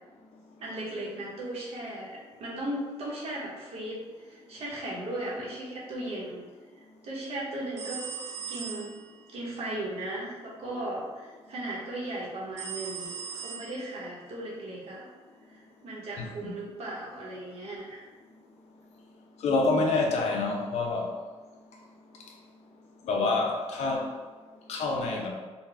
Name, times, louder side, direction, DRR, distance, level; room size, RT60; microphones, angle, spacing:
voice 1, 0.6-6.4 7.0-8.0 8.5-9.0 9.3-13.1 13.4-15.1 15.8-18.0, right 1 dB, 65° right, -5 dB, 1.2 m, -36 dB
sound 1, 7.8-9.1 12.6-14.1, right 6 dB, 85° right, 0.6 m, -39 dB
voice 2, 16.2-16.5 19.4-21.1 23.0-24.1 24.7-25.3, left 3 dB, 80° left, 0 dB, 0.7 m, -27 dB
4.0 x 2.3 x 3.4 m, 1.4 s
wide cardioid pair, 160°, 11 cm